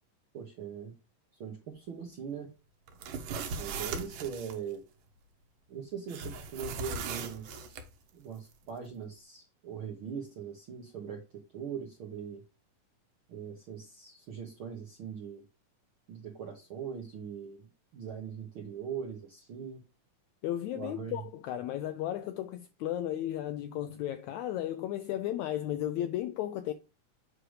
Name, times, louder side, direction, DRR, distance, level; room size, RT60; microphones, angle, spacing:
voice 1, 0.3-0.9 1.4-2.5 3.6-4.8 5.7-7.8 8.1-12.4 13.3-15.4 16.1-19.8 20.7-21.2, right 7 dB, 70° right, 1.3 m, -41 dB
sound 1, 2.9-4.6 6.1-7.9, right 4 dB, 85° right, 2.6 m, -38 dB
voice 2, 20.4-26.7, left 12 dB, 85° left, 1.6 m, -34 dB
7.7 x 3.2 x 6.3 m
omnidirectional pair, 3.8 m